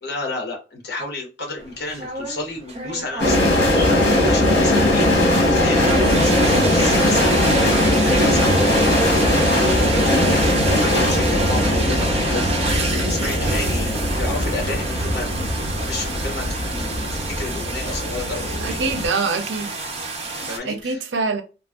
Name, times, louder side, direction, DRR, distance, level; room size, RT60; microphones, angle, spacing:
voice 1, 0.0-8.9 9.5-15.3 15.8-18.8 20.5-21.0, left 2 dB, 65° left, 1.1 m, -31 dB
sound 1, 1.6-20.6, right 3 dB, 35° right, 0.7 m, -28 dB
sound 2, 3.2-19.1, left 1 dB, 90° left, 1.0 m, -19 dB
voice 2, 18.6-19.7 20.6-21.4, right 4 dB, 80° right, 0.6 m, -24 dB
3.2 x 2.5 x 2.3 m
head